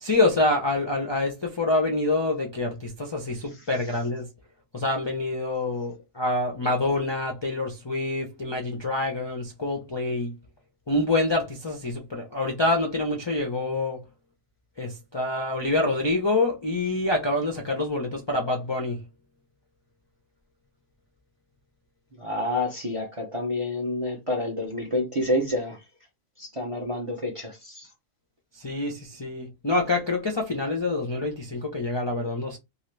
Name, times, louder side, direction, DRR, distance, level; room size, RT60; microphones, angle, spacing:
voice 1, 0.0-4.3 4.7-10.4 10.9-14.0 14.8-19.0 28.5-32.6, left 2 dB, 45° left, 0.3 m, -26 dB
voice 2, 22.2-25.8 26.4-27.9, left 1 dB, 40° right, 0.5 m, -28 dB
2.7 x 2.4 x 3.2 m
omnidirectional pair, 1.4 m